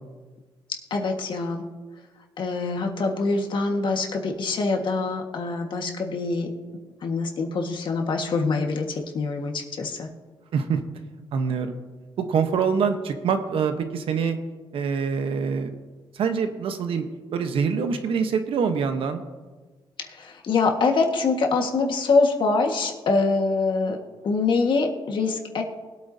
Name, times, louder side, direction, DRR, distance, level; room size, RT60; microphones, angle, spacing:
voice 1, 0.9-1.6 2.4-6.5 7.0-10.1 20.2-24.0 24.2-25.6, left 3 dB, 60° left, 3 dB, 1.6 m, -24 dB
voice 2, 11.3-11.8 12.2-14.4 14.7-15.8 16.1-17.0 17.3-19.2, right 6 dB, 80° right, 7 dB, 1.0 m, -25 dB
20.5 x 8.5 x 2.8 m, 1.4 s
cardioid pair, 95°, 9 cm